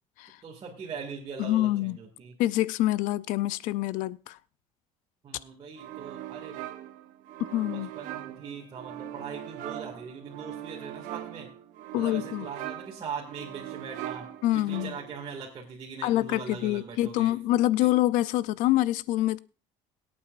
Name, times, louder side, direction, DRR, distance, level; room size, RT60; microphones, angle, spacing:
voice 1, 0.4-2.3 5.2-6.6 7.6-11.5 11.9-14.3 14.5-17.4 17.8-17.9, right 6 dB, 40° right, 2.1 m, -41 dB
voice 2, 1.4-2.0 2.4-4.4 7.4-7.9 11.9-12.5 14.4-15.0 16.0-19.4, left 15 dB, 80° left, 0.4 m, -26 dB
sound 1, 5.8-15.3, right 12 dB, 80° right, 1.1 m, -41 dB
22.5 x 8.7 x 2.5 m
cardioid pair, 130°, 13 cm